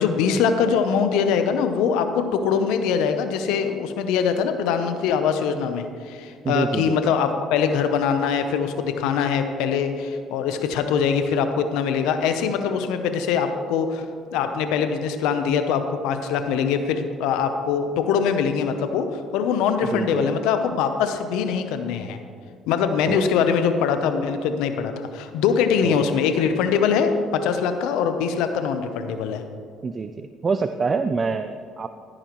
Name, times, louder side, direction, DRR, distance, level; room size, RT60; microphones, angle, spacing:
voice 1, 0.0-14.1 14.3-22.2 22.7-29.4, left 6 dB, 85° left, 8 dB, 0.7 m, -23 dB
voice 2, 6.4-7.1 19.9-20.3 23.1-23.3 25.8-26.1 29.8-31.9, right 4 dB, 35° right, 9 dB, 0.4 m, -26 dB
15.0 x 8.9 x 3.1 m, 2.2 s
supercardioid pair, 80°, 0 cm